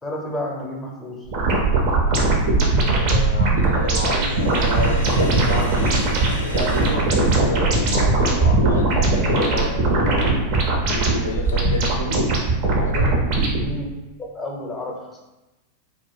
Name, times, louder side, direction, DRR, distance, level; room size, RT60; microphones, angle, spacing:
voice 1, 0.0-1.3 13.6-13.8 14.2-15.2, left 1 dB, 15° left, -1 dB, 0.7 m, -31 dB
sound 1, 1.3-13.7, right 3 dB, 45° right, 0.6 m, -20 dB
voice 2, 2.9-10.3 10.7-12.3 12.8-13.2, left 2 dB, 70° left, 0 dB, 0.4 m, -29 dB
Sink (filling or washing), 4.0-7.9, equal, 85° right, 0.7 m, -34 dB
2.4 x 2.2 x 3.6 m, 1.0 s
figure-of-eight pair, 90°, 0 cm